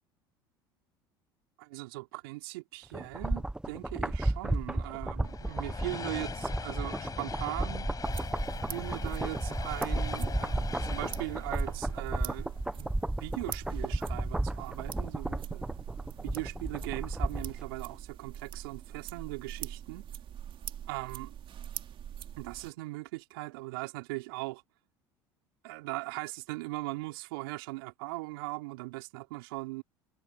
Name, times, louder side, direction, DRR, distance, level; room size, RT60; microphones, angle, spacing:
voice 1, 1.6-7.9 8.7-12.9 13.2-15.7 16.2-20.1 20.9-21.3 22.4-24.6 25.6-29.8, right 23 dB, 75° right, 4.1 m, -39 dB
sound 1, 2.9-17.6 17.9-18.0, right 1 dB, 5° right, 1.2 m, -34 dB
sound 2, 5.2-12.7, left 6 dB, 30° left, 5.8 m, -41 dB
sound 3, 8.0-22.7, right 9 dB, 45° right, 2.7 m, -43 dB
hypercardioid pair, 70°, 12 cm